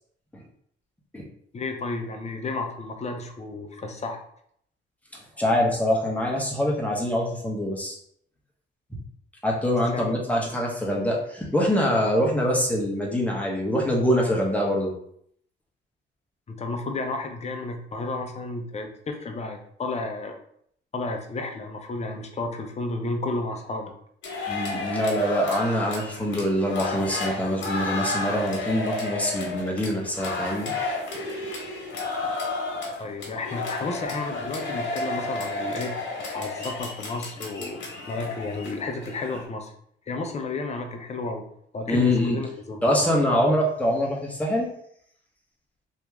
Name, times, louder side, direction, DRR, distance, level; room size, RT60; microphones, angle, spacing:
voice 1, 1.5-4.2 9.9-10.2 16.5-20.4 20.9-23.9 33.0-36.0 36.3-39.7 40.1-41.4 41.7-43.1, left 3 dB, 35° left, 4 dB, 0.7 m, -32 dB
voice 2, 5.4-8.0 9.4-14.9 24.5-30.7 41.9-42.4 42.8-44.7, equal, 5° left, -2 dB, 1.1 m, -24 dB
sound 1, 24.2-39.4, left 3 dB, 70° left, 1.2 m, -32 dB
3.0 x 2.7 x 3.5 m, 0.67 s
cardioid pair, 90°, 20 cm